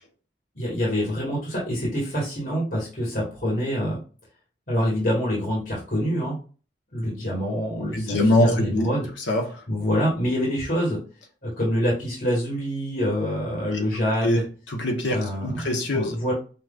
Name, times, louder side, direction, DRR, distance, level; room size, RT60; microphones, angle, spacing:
voice 1, 0.6-4.0 4.7-6.3 6.9-9.1 9.7-11.0 11.4-14.4 15.1-15.6 15.9-16.3, equal, 50° left, -4 dB, 1.9 m, -26 dB
voice 2, 7.8-8.9 9.3-9.6 13.7-13.8 14.2-14.4 14.7-15.2 15.4-16.2, left 1 dB, 90° left, 2 dB, 1.3 m, -23 dB
5.8 x 3.1 x 2.5 m, 0.36 s
head